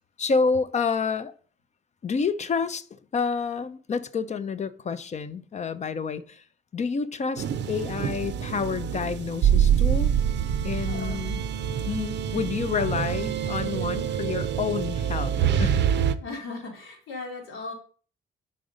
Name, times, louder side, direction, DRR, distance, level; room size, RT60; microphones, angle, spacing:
voice 1, 0.2-1.3 2.0-6.4 6.7-10.1 10.6-11.4 11.9-15.3 15.6-15.8, left 5 dB, 35° left, 0.5 m, -29 dB
sound 1, 7.4-16.1, right 8 dB, 60° right, 0.5 m, -26 dB
voice 2, 10.9-11.3 16.2-17.7, left 3 dB, 85° left, 1.9 m, -37 dB
5.2 x 4.0 x 5.0 m
cardioid pair, 90°, 20 cm